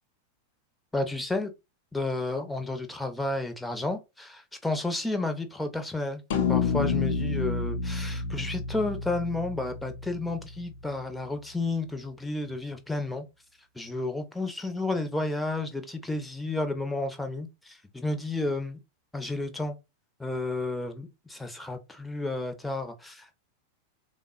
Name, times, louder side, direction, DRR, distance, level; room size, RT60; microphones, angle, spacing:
voice 1, 0.9-1.5 1.9-6.2 6.5-13.3 13.7-18.8 19.1-19.8 20.2-23.3, left 2 dB, 5° left, 0.6 m, -31 dB
sound 1, 6.3-10.8, left 5 dB, 55° left, 0.6 m, -29 dB
3.4 x 2.0 x 2.3 m
figure-of-eight pair, 90°, 0 cm